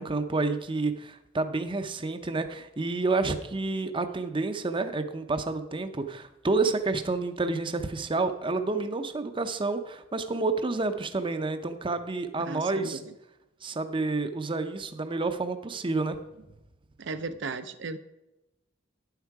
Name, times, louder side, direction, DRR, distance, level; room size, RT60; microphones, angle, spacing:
voice 1, 0.0-13.0 13.6-16.2, right 3 dB, 25° right, 8 dB, 0.6 m, -29 dB
voice 2, 12.5-13.0 17.0-18.0, right 3 dB, 65° right, 9 dB, 0.6 m, -35 dB
9.8 x 8.1 x 4.7 m, 0.97 s
head